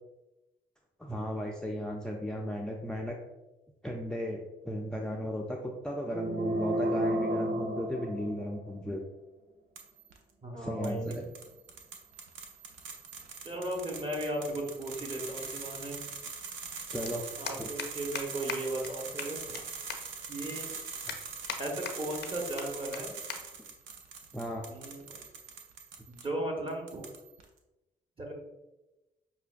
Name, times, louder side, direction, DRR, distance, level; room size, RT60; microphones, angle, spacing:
voice 1, 1.0-3.2 3.8-5.6 5.8-9.0 10.6-11.2 16.9-17.2 17.6-17.7 21.1-21.2 24.3-24.6, equal, 5° left, 0 dB, 0.4 m, -35 dB
sound 1, 6.1-8.8, right 1 dB, 50° right, 0.7 m, -31 dB
sound 2, 9.8-10.2 10.8-26.3 26.7-27.4, right 5 dB, 90° right, 0.5 m, -43 dB
voice 2, 10.4-11.3 13.4-16.0 17.4-19.4 20.3-20.7 21.6-23.1 24.7-25.2 26.1-27.0 28.2-28.3, right 1 dB, 30° right, 0 dB, 1.1 m, -36 dB
sound 3, 17.1-17.2 17.5-17.9 18.2-18.3 18.5-18.6 18.8-18.9 19.2-19.6 19.9-20.0 20.5-20.6 21.1-21.6 21.9-22.3 22.6-22.7 22.9-23.0 23.3-23.4 23.7-23.9 24.7-25.0, left 7 dB, 65° left, 0.5 m, -37 dB
5.5 x 2.2 x 2.4 m, 1.0 s
supercardioid pair, 50°, 19 cm